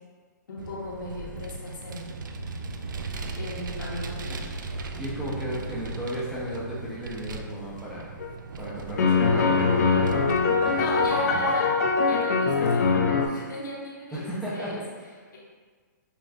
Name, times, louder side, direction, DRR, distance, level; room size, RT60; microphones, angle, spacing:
voice 1, 0.5-2.1 3.4-4.5 10.7-11.7 12.0-14.8, left 1 dB, 75° left, -4 dB, 1.1 m, -35 dB
Vehicle, 0.6-11.5, right 3 dB, 75° right, 0.4 m, -37 dB
voice 2, 5.0-8.1 8.6-10.2 10.6-11.4 14.1-14.8, equal, 5° right, -8 dB, 0.5 m, -35 dB
sound 1, 8.2-8.3 9.0-13.3, left 4 dB, 55° left, 0.5 m, -22 dB
5.3 x 2.4 x 2.4 m, 1.5 s
hypercardioid pair, 155°, 11 cm